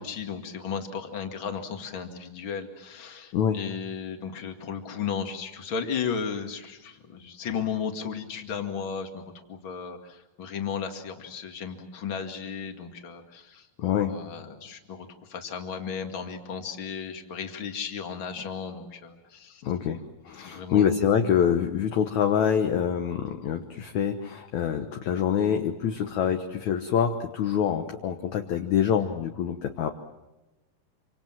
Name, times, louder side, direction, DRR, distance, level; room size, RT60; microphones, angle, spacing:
voice 1, 0.0-19.6 20.4-20.9, left 6 dB, 40° left, 5 dB, 2.5 m, -35 dB
voice 2, 13.8-14.1 19.6-29.9, left 8 dB, 65° left, 5 dB, 2.2 m, -25 dB
27.5 x 26.0 x 7.5 m, 1.0 s
omnidirectional pair, 4.2 m